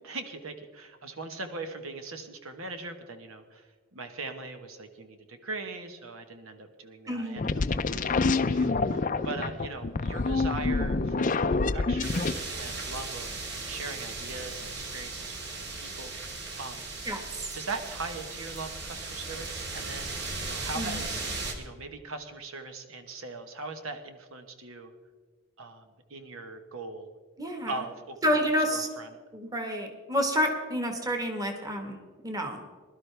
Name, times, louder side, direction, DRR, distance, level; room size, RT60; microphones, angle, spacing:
voice 1, 0.0-15.3 15.8-16.1 16.6-16.9 17.5-21.2 21.6-24.9 25.6-27.1 27.7-28.2 28.7-29.1, right 3 dB, 75° right, 6 dB, 1.3 m, -40 dB
voice 2, 7.1-7.5 17.0-17.6 20.7-21.1 27.4-27.8 28.2-28.9 29.3-32.0 32.2-32.6, equal, 15° right, 4 dB, 1.5 m, -29 dB
sound 1, 7.4-12.3, left 3 dB, 35° left, 0.5 m, -27 dB
sound 2, 12.0-21.5, right 3 dB, 50° right, 2.0 m, -37 dB
21.0 x 12.0 x 3.4 m, 1.5 s
head